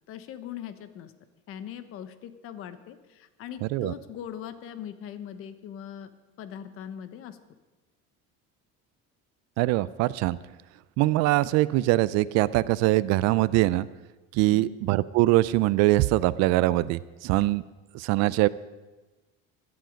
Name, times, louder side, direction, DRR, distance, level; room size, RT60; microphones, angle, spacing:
voice 1, 0.1-1.1 1.5-6.1 6.4-7.4 14.4-14.7, left 9 dB, 45° left, 11 dB, 1.0 m, -40 dB
voice 2, 9.6-10.4 11.0-13.9 14.3-17.6 17.9-18.5, right 18 dB, 60° right, 18 dB, 0.5 m, -23 dB
17.0 x 12.0 x 5.2 m, 1.2 s
cardioid pair, 170°, 30 cm